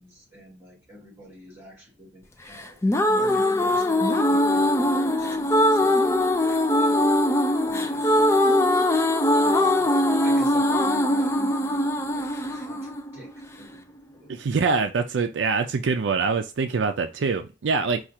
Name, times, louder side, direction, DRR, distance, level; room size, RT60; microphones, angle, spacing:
voice 1, 0.0-7.2 7.6-8.6 9.4-13.8 14.1-14.6, left 1 dB, 10° right, 2.4 m, -45 dB
sound 1, 2.6-13.6, left 1 dB, 15° left, 0.4 m, -21 dB
voice 2, 14.3-18.0, right 4 dB, 75° right, 0.4 m, -24 dB
4.8 x 2.4 x 4.2 m
head